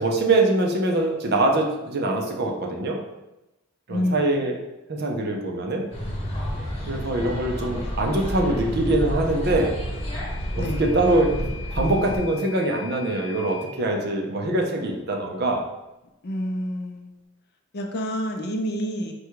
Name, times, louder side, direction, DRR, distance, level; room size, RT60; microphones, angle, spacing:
voice 1, 0.0-3.0 3.9-4.6 4.9-5.8 6.9-9.8 10.5-11.4 11.7-15.6, right 2 dB, 50° right, 1 dB, 0.6 m, -23 dB
voice 2, 3.9-4.5 10.5-10.9 16.2-17.1 17.7-19.1, equal, 50° left, 3 dB, 0.6 m, -28 dB
sound 1, 5.9-12.2, equal, 30° left, 1.0 m, -30 dB
Microwave oven / Alarm, 9.6-13.7, left 6 dB, 90° left, 0.7 m, -42 dB
4.8 x 2.3 x 4.5 m, 0.97 s
head